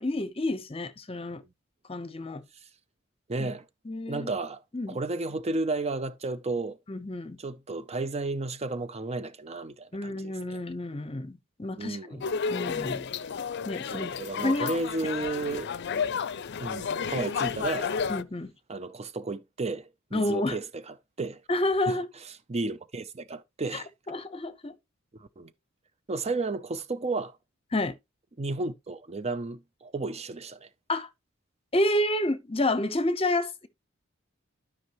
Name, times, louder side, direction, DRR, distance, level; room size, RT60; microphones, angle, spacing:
voice 1, 0.0-1.4 1.9-2.4 3.4-3.5 3.9-4.3 4.7-5.0 6.9-7.4 9.9-12.2 12.5-13.0 13.7-14.1 14.4-14.7 18.1-18.5 20.1-20.6 21.5-22.1 23.7-24.7 27.7-27.9 30.9-31.1 31.7-33.7, left 1 dB, 30° left, 0.9 m, -29 dB
voice 2, 3.3-3.6 4.1-6.8 7.4-10.6 11.8-12.3 13.9-15.7 16.6-17.9 18.7-21.4 21.9-22.0 22.5-23.9 25.2-25.5 26.1-27.4 28.4-30.7, right 3 dB, 30° right, 0.6 m, -33 dB
sound 1, 12.2-18.2, left 6 dB, 55° left, 0.5 m, -32 dB
12.5 x 5.5 x 3.0 m
head